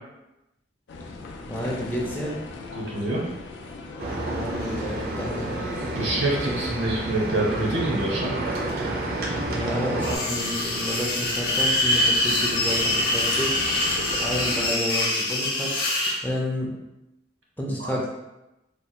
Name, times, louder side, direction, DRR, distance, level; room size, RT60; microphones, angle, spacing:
sound 1, 0.9-14.7, left 3 dB, 75° left, 0.4 m, -39 dB
voice 1, 1.5-2.4 4.3-5.5 9.5-13.5 14.1-16.7 17.6-18.0, equal, 10° left, -3 dB, 0.4 m, -30 dB
voice 2, 2.8-3.2 5.9-8.3 17.8-18.0, right 2 dB, 85° right, -4 dB, 1.0 m, -26 dB
sound 2, 4.0-10.2, right 2 dB, 50° right, 0.4 m, -30 dB
sound 3, 10.0-16.2, left 1 dB, 45° left, 0.7 m, -24 dB
3.2 x 2.2 x 2.8 m, 0.95 s
head